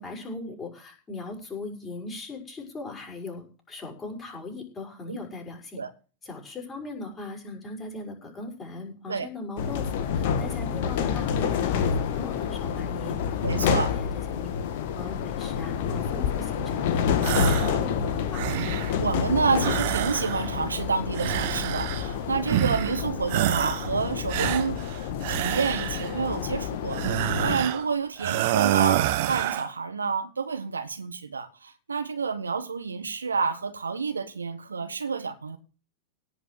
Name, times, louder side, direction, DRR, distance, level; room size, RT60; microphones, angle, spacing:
voice 1, 0.0-5.8 6.2-14.5 14.9-18.4, left 3 dB, 20° left, 6.1 m, -39 dB
sound 1, 9.6-27.6, left 7 dB, 50° left, 1.6 m, -28 dB
voice 2, 13.4-13.9 19.0-24.8 25.3-29.0 29.3-35.6, right 5 dB, 75° right, 1.3 m, -29 dB
sound 2, 17.2-17.8 18.1-19.0 19.6-20.6 21.1-22.1 22.5-23.0 23.3-23.9 24.3-26.1 26.9-27.9 28.2-29.7, right 14 dB, 50° right, 1.3 m, -27 dB
17.5 x 6.0 x 7.7 m
figure-of-eight pair, 90°, 0 cm